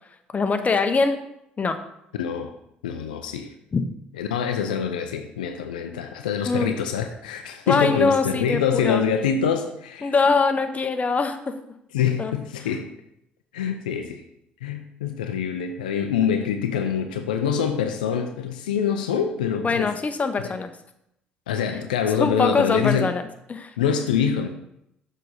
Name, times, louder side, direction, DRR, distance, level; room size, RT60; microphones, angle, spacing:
voice 1, 0.3-1.2 1.6-1.8 3.7-3.8 6.5-6.7 7.7-9.0 10.0-11.5 12.2-12.3 19.6-20.7 22.2-23.2 23.5-23.7, left 4 dB, 35° left, 8 dB, 0.8 m, -22 dB
voice 2, 2.2-2.5 2.8-3.5 4.2-10.1 11.9-12.9 13.5-14.2 14.6-19.9 20.4-20.5 21.5-23.1 23.8-24.5, left 7 dB, 85° left, 6 dB, 0.5 m, -25 dB
6.7 x 5.0 x 4.1 m, 0.78 s
hypercardioid pair, 55°, 4 cm